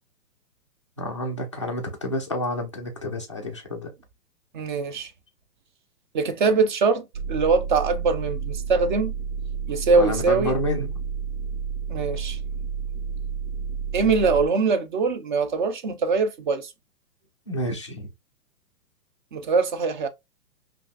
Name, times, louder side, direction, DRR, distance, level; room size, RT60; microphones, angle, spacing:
voice 1, 1.0-3.9 10.0-10.9 17.5-18.1, left 1 dB, 20° left, 0.3 m, -29 dB
voice 2, 4.5-5.1 6.1-9.1 9.7-10.6 11.9-12.4 13.9-16.7 19.3-20.1, right 4 dB, 30° right, 0.5 m, -23 dB
sound 1, 7.1-14.5, right 6 dB, 80° right, 1.2 m, -31 dB
5.4 x 2.6 x 2.3 m
hypercardioid pair, 130°, 49 cm